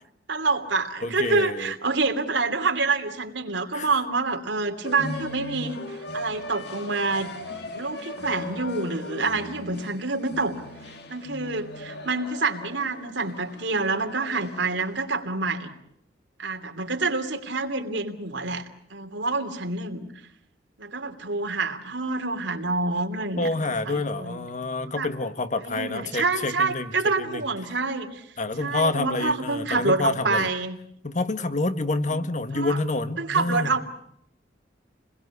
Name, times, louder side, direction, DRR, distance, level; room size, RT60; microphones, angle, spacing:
voice 1, 0.3-7.3 7.7-10.6 11.1-15.7 16.4-18.6 18.9-20.1 20.8-24.4 24.8-25.1 25.6-28.2 28.6-30.8 32.1-32.2 32.5-32.8 33.2-33.9, right 3 dB, 90° right, 5 dB, 2.9 m, -27 dB
voice 2, 1.0-1.7 3.7-3.9 23.4-26.9 27.2-27.4 28.4-30.5 31.0-33.7, left 2 dB, 45° left, 10 dB, 1.7 m, -28 dB
sound 1, 4.8-15.0, left 2 dB, 65° left, 3.0 m, -38 dB
29.5 x 21.5 x 8.3 m, 0.73 s
head